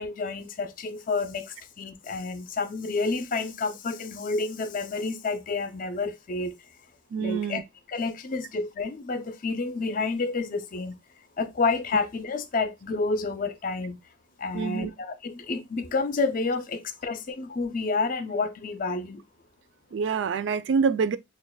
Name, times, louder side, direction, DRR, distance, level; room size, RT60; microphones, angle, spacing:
voice 1, 0.0-6.5 7.2-7.6 7.9-10.9 11.4-14.0 14.4-19.2, left 3 dB, 45° left, 0.5 m, -29 dB
voice 2, 7.1-7.6 14.5-14.9 19.9-21.2, right 5 dB, 75° right, 0.3 m, -26 dB
6.2 x 2.4 x 2.2 m
head